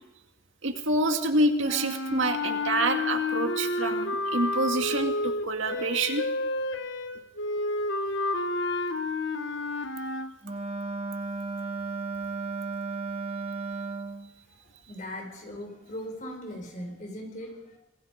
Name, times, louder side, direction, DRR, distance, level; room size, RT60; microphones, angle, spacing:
voice 1, 0.6-6.2, right 2 dB, 70° right, 5 dB, 2.2 m, -27 dB
sound 1, 1.6-10.3, left 2 dB, 65° left, 1.3 m, -30 dB
Wind instrument woodwind instrument, 10.4-14.3, right 3 dB, 30° right, 1.7 m, -34 dB
voice 2, 14.5-17.8, equal, 40° left, 3 dB, 5.3 m, -39 dB
26.0 x 19.5 x 5.2 m, 0.97 s
head